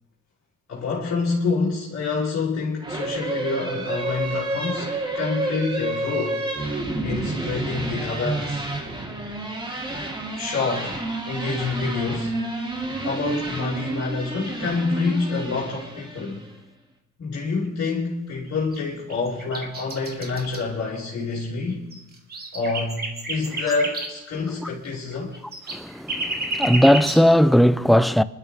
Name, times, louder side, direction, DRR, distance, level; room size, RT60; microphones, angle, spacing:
voice 1, 0.7-4.9 5.1-6.4 7.0-8.6 10.4-11.0 11.2-12.3 13.0-16.4 17.2-21.8 22.5-25.4, left 4 dB, 55° left, 4.2 m, -27 dB
sound 1, 2.8-16.4, right 2 dB, 15° right, 2.8 m, -30 dB
sound 2, 18.5-18.8 19.1-20.6 21.4-21.5 21.7-24.1 24.8-24.9 25.1-27.2, right 2 dB, 30° right, 2.7 m, -31 dB
voice 2, 25.7-28.2, equal, ahead, 0.5 m, -17 dB
25.5 x 12.5 x 3.6 m
cardioid pair, 90°, 30 cm